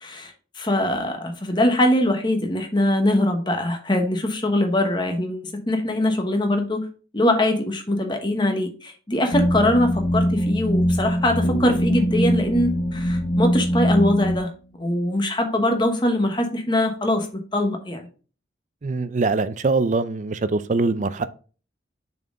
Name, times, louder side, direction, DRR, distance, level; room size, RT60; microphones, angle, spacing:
voice 1, 0.0-6.8 7.1-14.5 14.8-17.3 17.5-18.1, left 1 dB, 25° left, 1.1 m, -22 dB
sound 1, 9.3-14.4, equal, 40° left, 0.7 m, -22 dB
Bass guitar, 11.4-15.1, right 2 dB, 70° left, 1.0 m, -34 dB
voice 2, 18.8-21.3, right 3 dB, 40° right, 0.4 m, -23 dB
6.6 x 4.3 x 3.7 m
head